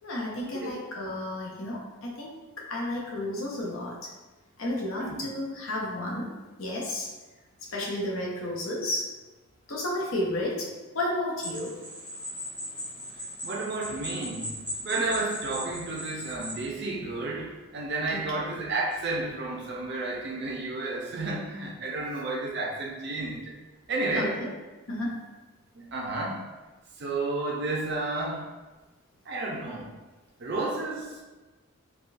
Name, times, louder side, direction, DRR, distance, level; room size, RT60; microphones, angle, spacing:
voice 1, 0.0-2.4 2.7-4.1 4.6-6.3 6.6-7.1 7.6-9.1 9.7-10.7 10.9-11.8 15.0-15.1 18.1-18.2 24.1-24.5 24.9-25.2, left 1 dB, 65° left, -3 dB, 0.7 m, -32 dB
sound 1, 11.4-16.6, equal, 10° left, 0.9 m, -38 dB
voice 2, 13.4-14.6 14.8-23.5 23.9-24.3 25.7-26.4 27.0-28.4 29.3-29.9 30.4-31.2, right 2 dB, 50° right, -2 dB, 0.5 m, -31 dB
3.6 x 2.3 x 2.5 m, 1.2 s
head